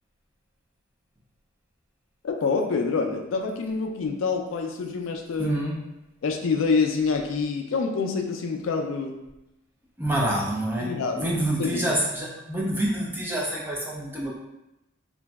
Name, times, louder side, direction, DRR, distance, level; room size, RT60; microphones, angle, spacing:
voice 1, 2.2-5.6 6.2-9.2 10.8-11.9, left 4 dB, 70° left, 3 dB, 0.3 m, -27 dB
voice 2, 5.4-5.9 10.0-14.3, right 1 dB, 10° right, -4 dB, 0.4 m, -27 dB
3.0 x 2.6 x 2.3 m, 0.93 s
head